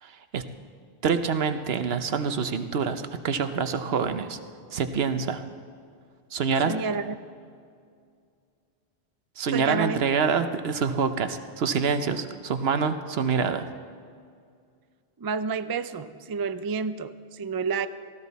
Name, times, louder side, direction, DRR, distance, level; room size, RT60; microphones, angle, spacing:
voice 1, 0.0-0.4 1.0-4.4 4.7-5.4 6.3-6.7 9.4-13.7, right 5 dB, 75° right, 9 dB, 1.0 m, -26 dB
voice 2, 6.7-7.2 9.5-10.0 10.4-10.5 15.2-17.9, right 5 dB, 40° right, 12 dB, 0.3 m, -30 dB
18.5 x 15.0 x 4.1 m, 2.2 s
omnidirectional pair, 1.0 m